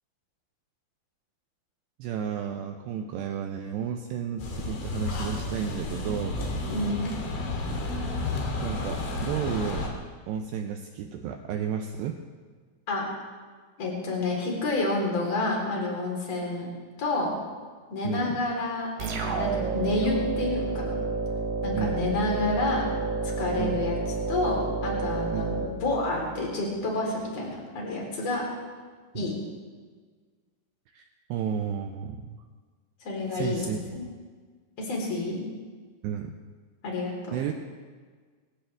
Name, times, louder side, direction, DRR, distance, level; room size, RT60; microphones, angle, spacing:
voice 1, 2.0-6.4 8.6-10.0 10.3-12.2 18.0-18.4 21.7-22.0 23.6-23.8 25.3-25.4 29.1-29.3 30.9-32.4 33.3-34.1 36.0-36.3 37.3-37.5, right 8 dB, 80° right, 5 dB, 2.5 m, -32 dB
sound 1, 4.4-9.9, left 2 dB, 70° left, 4.9 m, -31 dB
voice 2, 6.7-7.0 12.9-13.0 13.8-16.7 17.0-17.3 17.9-21.0 21.6-22.9 23.2-24.0 24.3-28.5 29.1-29.3 33.0-34.0 34.8-35.4 36.8-37.4, left 2 dB, 35° left, -2 dB, 4.4 m, -29 dB
sound 2, 19.0-26.5, right 3 dB, 60° right, 4.1 m, -30 dB
25.5 x 15.5 x 3.5 m, 1.5 s
omnidirectional pair, 5.7 m